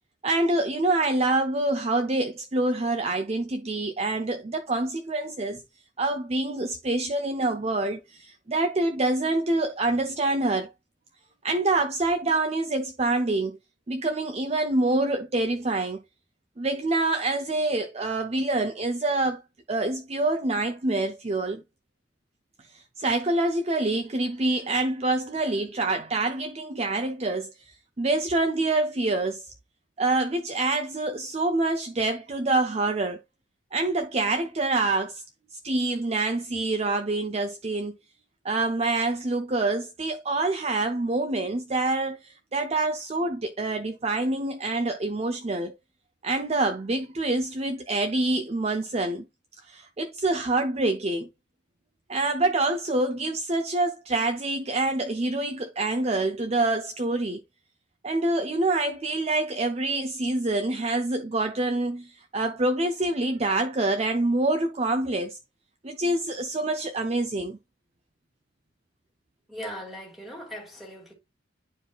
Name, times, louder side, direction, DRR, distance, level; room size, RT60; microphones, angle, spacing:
voice 1, 0.2-5.6 6.0-10.7 11.4-13.6 13.9-16.0 16.6-19.4 19.7-21.6 22.7-27.5 28.0-29.4 30.0-33.2 33.7-35.2 35.6-37.9 38.4-45.7 46.2-49.3 49.7-51.3 52.1-57.4 58.0-65.4 65.8-67.6, right 2 dB, 30° right, 0.6 m, -26 dB
voice 2, 69.5-71.1, equal, ahead, 2.6 m, -39 dB
11.0 x 4.8 x 2.4 m
head